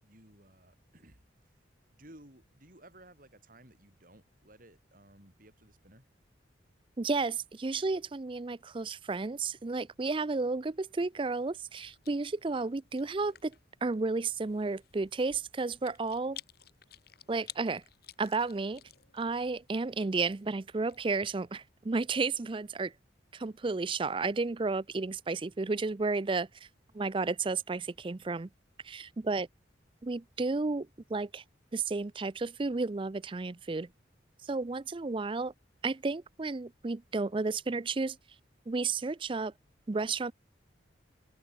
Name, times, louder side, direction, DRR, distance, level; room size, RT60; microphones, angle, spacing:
voice 1, 0.0-1.5 1.9-6.1 29.2-29.4, right 1 dB, 45° right, 7.7 m, -57 dB
voice 2, 7.0-13.5 13.8-16.4 17.3-17.8 18.2-18.8 19.1-22.9 23.3-26.5 26.9-28.5 28.8-29.5 30.0-31.4 31.7-33.9 34.4-35.5 35.8-38.2 38.7-39.5 39.9-40.3, right 3 dB, 25° right, 0.4 m, -32 dB
Chewing mastication, 11.1-21.3, left 11 dB, 55° left, 6.5 m, -55 dB
head